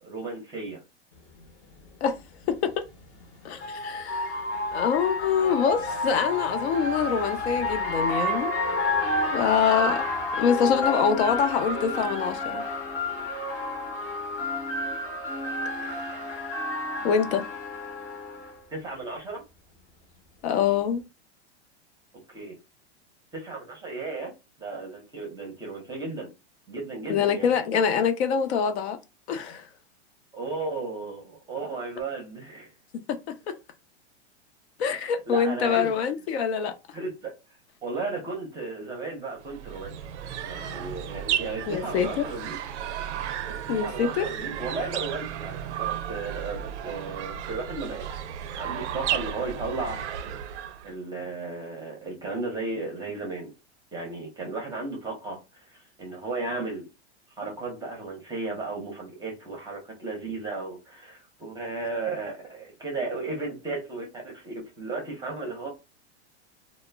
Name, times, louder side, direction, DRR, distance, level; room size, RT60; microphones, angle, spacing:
voice 1, 0.0-0.8 18.7-19.4 22.3-22.5 23.3-24.3 24.6-26.3 26.7-27.5 30.3-32.7 35.3-35.9 36.9-37.3 37.8-40.0 40.4-42.6 43.7-48.2 48.6-50.0 50.8-53.5 53.9-55.4 56.0-56.9 57.4-65.7, right 3 dB, 10° right, 0.6 m, -34 dB
sound 1, 1.4-1.5 2.9-18.5, left 2 dB, 35° left, 0.7 m, -30 dB
voice 2, 2.5-2.8 3.4-4.4 4.7-8.5 9.3-10.0 10.4-12.6 15.8-16.1 17.0-17.4 20.4-21.0 27.1-29.0 29.3-29.7 33.5-33.6 34.8-36.7 41.7-42.2 43.7-44.3, left 7 dB, 70° left, 0.6 m, -25 dB
sound 2, 39.4-50.9, right 9 dB, 90° right, 0.5 m, -34 dB
2.1 x 2.0 x 3.3 m
supercardioid pair, 145°, 34 cm